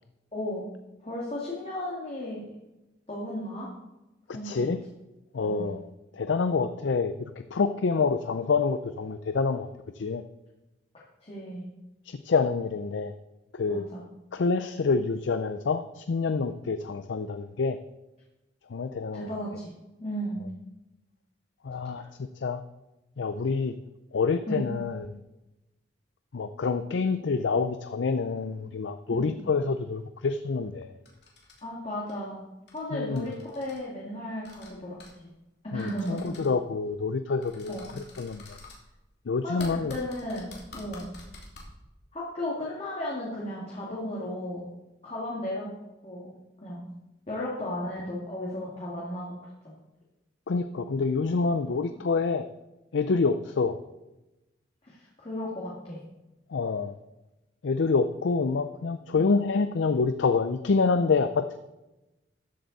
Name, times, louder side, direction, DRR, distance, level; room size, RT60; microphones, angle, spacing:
voice 1, 0.3-0.7 1.0-2.5 3.1-3.7 4.3-4.7 5.4-5.7 11.2-11.6 13.7-14.0 19.1-19.7 20.0-20.4 22.0-22.1 24.5-24.6 29.2-29.3 31.6-32.4 32.7-35.3 35.6-36.3 37.7-37.8 39.4-41.1 42.1-44.7 45.0-45.7 46.0-46.3 46.6-46.9 47.3-49.3 54.8-56.0, left 1 dB, 35° left, -5 dB, 2.1 m, -35 dB
voice 2, 4.4-4.8 5.3-5.9 6.2-7.1 7.5-9.7 10.0-10.2 12.1-13.1 13.5-13.9 14.3-17.8 18.7-19.3 21.6-22.0 22.4-22.6 23.2-23.7 24.1-25.1 26.3-30.9 32.9-33.2 35.7-37.8 38.2-38.4 39.3-40.0 50.5-52.4 52.9-53.8 56.5-56.9 57.6-61.6, left 4 dB, 80° left, 10 dB, 0.5 m, -27 dB
sound 1, 31.1-31.6 32.0-32.1 32.7-32.8 33.1-33.8 34.4-34.7 35.0-35.1 35.8-36.5 37.4-38.8 39.6-41.6, left 3 dB, 65° left, 2.8 m, -47 dB
13.5 x 7.8 x 4.0 m, 1.0 s
head